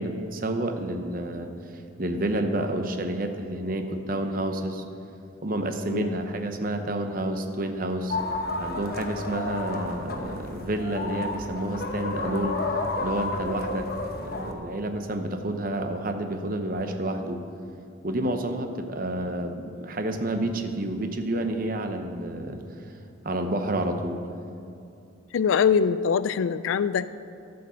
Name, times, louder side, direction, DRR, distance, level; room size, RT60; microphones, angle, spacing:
voice 1, 0.0-1.5 2.0-4.8 5.4-8.2 8.6-12.6 13.0-13.9 14.1-17.4 18.0-22.8 23.2-24.2, right 1 dB, 45° right, 6 dB, 0.8 m, -29 dB
sound 1, 8.1-14.5, left 2 dB, 50° left, 0.9 m, -31 dB
voice 2, 25.3-27.1, left 6 dB, 85° left, 15 dB, 0.4 m, -23 dB
13.5 x 5.3 x 6.9 m, 2.6 s
head